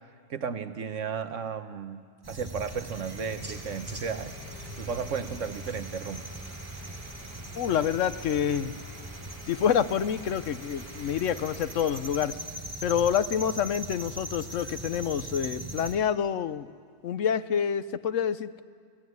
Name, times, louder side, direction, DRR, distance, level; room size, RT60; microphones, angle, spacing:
voice 1, 0.3-4.4 4.8-6.3, right 6 dB, 70° right, 10 dB, 1.3 m, -34 dB
sound 1, 2.2-16.0, right 1 dB, 15° right, 1.6 m, -40 dB
Domestic sounds home sounds, 2.7-12.6, equal, 45° right, 5.0 m, -49 dB
voice 2, 7.6-8.7 9.5-12.4 12.8-16.7 17.0-18.6, left 8 dB, 70° left, 13 dB, 1.1 m, -27 dB
27.5 x 17.5 x 9.5 m, 2.1 s
omnidirectional pair, 1.4 m